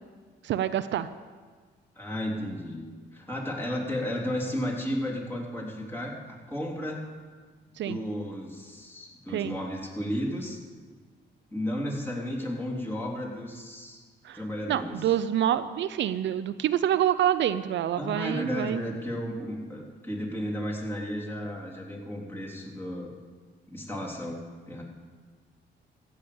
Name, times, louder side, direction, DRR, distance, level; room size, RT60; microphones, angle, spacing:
voice 1, 0.4-1.1 7.8-8.0 9.3-9.6 14.2-14.4 14.7-18.8, right 11 dB, 65° right, 12 dB, 0.5 m, -27 dB
voice 2, 1.9-2.8 3.1-7.0 7.8-10.6 11.5-14.0 14.3-15.0 18.0-23.1 23.7-24.8, equal, 10° left, -3 dB, 3.3 m, -33 dB
15.0 x 6.8 x 8.6 m, 1.5 s
cardioid pair, 90°, 20 cm